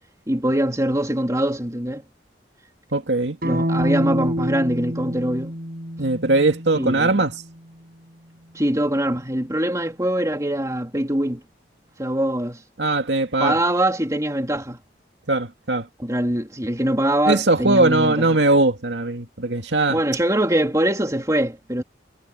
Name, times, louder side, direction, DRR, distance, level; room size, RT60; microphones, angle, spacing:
voice 1, 0.3-2.0 3.4-5.5 6.7-7.2 8.5-11.4 12.0-12.6 13.4-14.8 16.0-18.3 19.9-21.8, right 1 dB, 20° right, 3.2 m, -23 dB
voice 2, 2.9-3.4 6.0-7.3 12.8-13.6 15.3-15.9 17.3-20.0, right 2 dB, 85° right, 2.2 m, -20 dB
sound 1, 3.4-7.5, equal, 55° right, 5.8 m, -27 dB
head